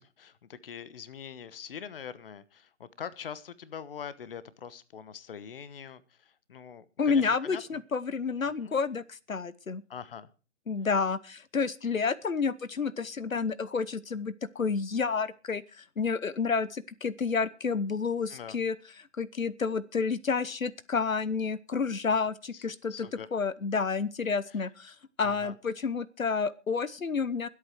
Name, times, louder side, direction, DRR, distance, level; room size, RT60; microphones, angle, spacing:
voice 1, 0.0-7.6 8.4-8.7 9.9-10.3 18.3-18.6 22.5-23.3 25.2-25.5, left 7 dB, 45° left, 16 dB, 1.2 m, -43 dB
voice 2, 7.0-9.8 10.7-18.8 19.2-27.5, left 5 dB, 85° left, 19 dB, 1.0 m, -30 dB
22.5 x 8.6 x 4.6 m, 0.34 s
figure-of-eight pair, 145°, 39 cm